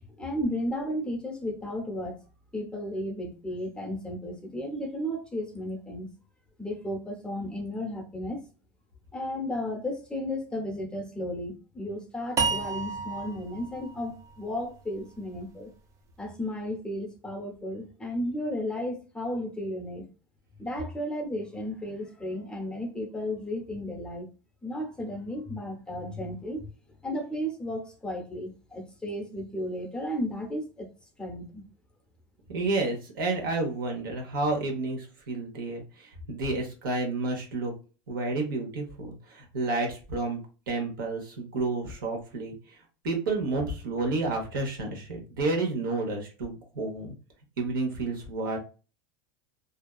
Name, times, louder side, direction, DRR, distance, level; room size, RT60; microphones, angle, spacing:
voice 1, 0.2-2.2 2.5-6.1 6.6-8.4 9.1-15.7 16.2-20.1 20.6-24.3 24.6-26.7 27.0-30.9 31.2-31.6, left 1 dB, 10° left, 1 dB, 0.7 m, -34 dB
sound 1, 12.4-15.6, right 4 dB, 30° right, 0.4 m, -32 dB
voice 2, 32.5-37.7 38.1-40.4 40.7-42.8 43.0-47.1 47.6-48.6, right 3 dB, 90° right, 1 dB, 1.0 m, -30 dB
2.5 x 2.2 x 2.3 m, 0.35 s
supercardioid pair, 115°, 11 cm